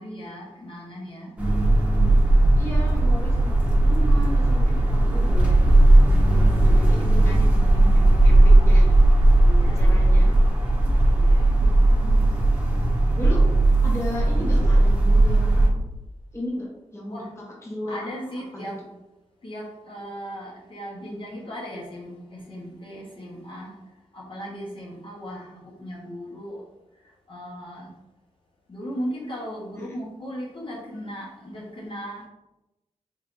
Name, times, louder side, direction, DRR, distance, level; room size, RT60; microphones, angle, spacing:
voice 1, 0.0-1.4 9.4-10.7 11.1-11.6 17.1-17.3 17.9-18.8 19.4-26.7 27.0-27.9 28.7-32.3, equal, 45° left, -4 dB, 1.1 m, -37 dB
sound 1, 1.4-15.7, right 1 dB, 10° right, 1.2 m, -17 dB
voice 2, 2.5-8.9 9.8-10.3 11.6-12.1 13.1-13.4 13.8-15.8 16.3-18.1 18.5-18.7 29.7-29.9, left 1 dB, 20° left, -3 dB, 1.1 m, -35 dB
4.5 x 3.2 x 2.6 m, 0.95 s
wide cardioid pair, 80°, 12 cm